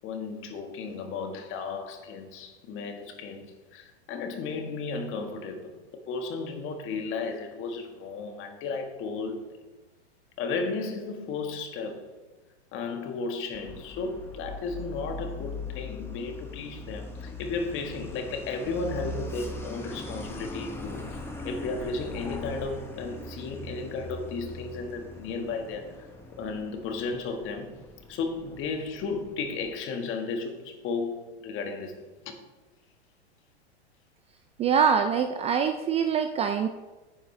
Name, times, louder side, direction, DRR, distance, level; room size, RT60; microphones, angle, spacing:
voice 1, 0.0-9.6 10.4-12.1 12.7-26.1 26.4-27.8 28.1-32.4, left 4 dB, 35° left, 1.7 m, -34 dB
Truck, 13.5-29.8, left 2 dB, 5° left, 1.2 m, -40 dB
voice 2, 34.6-36.7, right 7 dB, 20° right, 0.4 m, -24 dB
10.0 x 8.8 x 3.3 m
hypercardioid pair, 110°, 34 cm